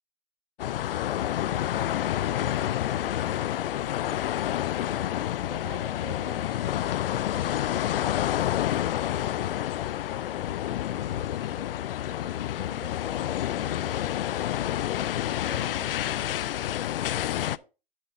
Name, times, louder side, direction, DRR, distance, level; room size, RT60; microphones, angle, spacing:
sound 1, 0.6-17.6, left 12 dB, 70° left, 0.4 m, -29 dB
voice 1, 1.2-5.1 5.5-14.9 15.2-17.7, right 3 dB, 15° right, 1 dB, 3.8 m, -51 dB
10.0 x 7.9 x 2.6 m, 0.29 s
hypercardioid pair, 135°, 29 cm